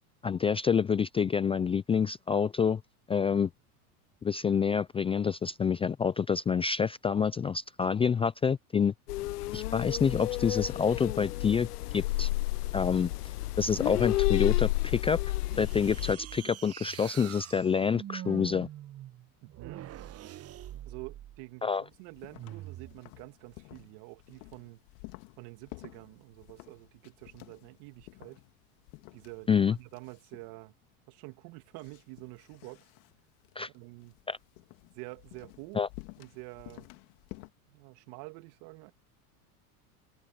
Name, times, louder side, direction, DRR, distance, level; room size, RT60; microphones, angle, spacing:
voice 1, 0.2-2.8 3.1-3.5 4.2-8.9 9.5-11.7 11.9-12.3 12.7-13.1 13.6-15.2 15.6-18.7 21.6-21.8 29.5-29.8 33.6-33.7 34.3-34.4 35.8-35.9, left 6 dB, 15° left, 0.4 m, -27 dB
sound 1, 9.1-16.1, left 17 dB, 90° left, 0.7 m, -31 dB
sound 2, 15.5-21.4 22.3-23.0, right 12 dB, 35° right, 1.1 m, -44 dB
voice 2, 19.4-19.8 20.8-24.8 25.4-28.4 29.1-30.7 31.1-32.9 33.7-34.2 34.9-35.8 36.2-36.9 37.7-38.9, right 25 dB, 60° right, 2.7 m, -47 dB
sound 3, 21.9-37.5, left 26 dB, 65° left, 2.3 m, -52 dB
hypercardioid pair, 105°, 45 cm